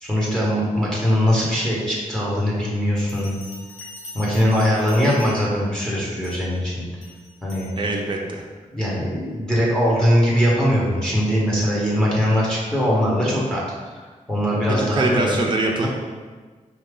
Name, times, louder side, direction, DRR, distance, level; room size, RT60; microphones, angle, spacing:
voice 1, 0.0-3.4 4.1-6.8 7.4-7.9 8.7-14.0 14.3-15.3, equal, 5° left, -6 dB, 1.3 m, -21 dB
Bell, 3.0-5.7 6.2-6.5 7.0-7.7, left 2 dB, 70° left, 1.1 m, -42 dB
voice 2, 7.8-8.4 14.7-15.9, right 2 dB, 35° right, 0 dB, 0.6 m, -23 dB
4.7 x 2.8 x 3.7 m, 1.4 s
wide cardioid pair, 90°, 13 cm